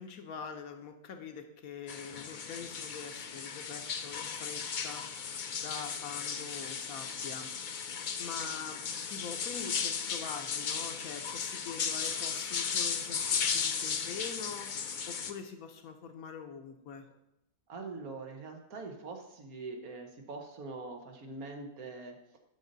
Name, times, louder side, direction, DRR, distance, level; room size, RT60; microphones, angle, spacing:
voice 1, 0.0-7.5 7.8-8.8 9.1-17.1, left 6 dB, 75° left, 6 dB, 1.3 m, -44 dB
sound 1, 1.9-15.3, left 6 dB, 55° left, 0.5 m, -36 dB
voice 2, 17.7-22.2, right 3 dB, 85° right, 3 dB, 1.5 m, -43 dB
9.2 x 6.6 x 4.0 m, 0.85 s
omnidirectional pair, 1.5 m